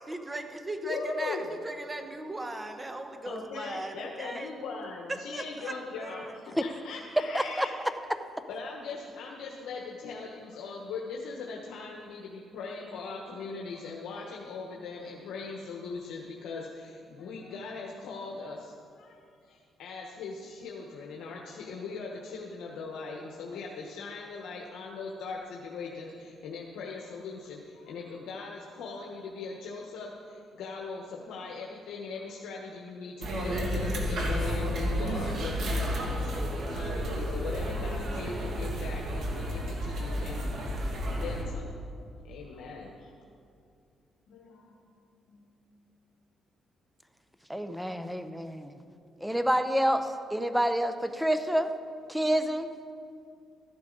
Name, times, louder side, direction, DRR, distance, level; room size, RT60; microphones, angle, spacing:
voice 1, 0.1-4.5 5.1-6.4, right 2 dB, 20° right, 6 dB, 1.2 m, -38 dB
voice 2, 0.8-1.5 3.2-7.8 8.5-36.3 36.7-40.6 41.2-41.8 42.2-43.1 44.3-44.7 45.3-45.5, left 4 dB, 85° left, -1 dB, 1.1 m, -40 dB
voice 3, 7.3-7.7 47.5-48.7 49.2-51.7 52.1-52.7, equal, 5° right, 9 dB, 0.8 m, -28 dB
sound 1, 33.2-41.4, equal, 65° right, 2.2 m, -31 dB
14.0 x 11.5 x 3.9 m, 2.4 s
cardioid pair, 90°, 0 cm